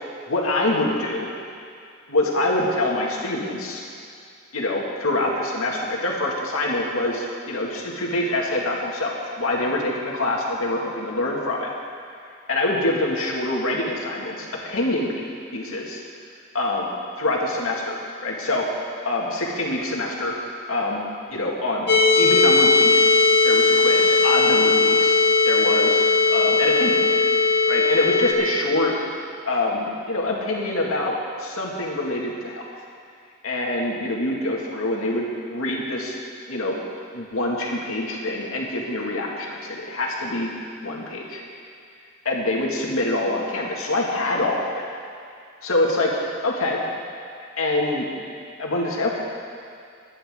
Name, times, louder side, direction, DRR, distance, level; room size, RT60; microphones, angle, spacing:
voice 1, 0.3-1.3 2.1-3.8 4.5-11.7 12.5-15.2 15.5-16.0 16.5-16.9 17.2-18.7 19.0-20.3 20.7-21.1 21.3-25.2 25.4-27.0 27.7-28.9 29.5-32.6 33.4-36.2 36.5-36.8 37.1-40.5 40.8-41.4 42.2-44.6 45.6-46.1 46.4-46.8 47.6-48.1 48.6-49.2, left 2 dB, 90° left, -2 dB, 2.1 m, -25 dB
sound 1, 21.9-28.3, left 4 dB, 50° left, 1.6 m, -18 dB
22.0 x 9.9 x 3.7 m, 2.4 s
head